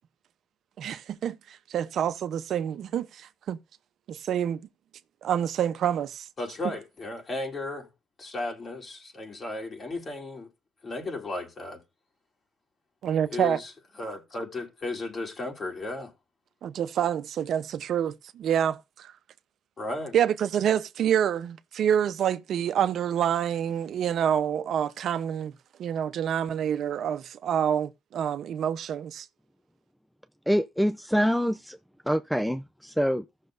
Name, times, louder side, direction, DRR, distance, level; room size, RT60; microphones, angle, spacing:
voice 1, 0.8-3.1 3.5-3.6 4.1-4.6 5.2-6.2 13.0-13.6 16.6-19.1 20.1-25.5 25.8-29.3, right 9 dB, 70° right, 0.8 m, -27 dB
voice 2, 6.4-7.9 8.2-10.5 10.8-11.8 13.3-13.7 14.0-16.1 19.8-20.2, left 2 dB, 40° left, 3.3 m, -35 dB
voice 3, 30.5-31.8 32.1-33.2, equal, ahead, 0.5 m, -25 dB
16.0 x 6.5 x 2.6 m
cardioid pair, 90°, 0 cm